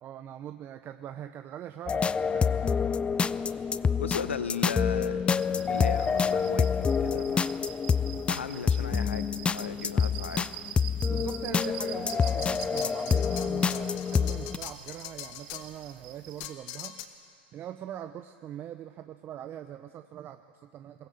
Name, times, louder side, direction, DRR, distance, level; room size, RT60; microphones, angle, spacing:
voice 1, 0.0-2.7 11.1-17.3 17.5-21.1, right 11 dB, 35° right, 9 dB, 0.7 m, -42 dB
sound 1, 1.9-14.6, left 6 dB, 15° left, 0.5 m, -27 dB
voice 2, 4.0-5.2 5.7-7.4 8.3-10.5, left 6 dB, 85° left, 13 dB, 0.9 m, -36 dB
sound 2, 5.4-16.5, right 11 dB, 55° right, 1.3 m, -45 dB
sound 3, 12.1-15.7 16.4-17.1, left 11 dB, 50° left, 1.5 m, -42 dB
22.0 x 18.5 x 7.8 m, 2.4 s
hypercardioid pair, 95°, 6 cm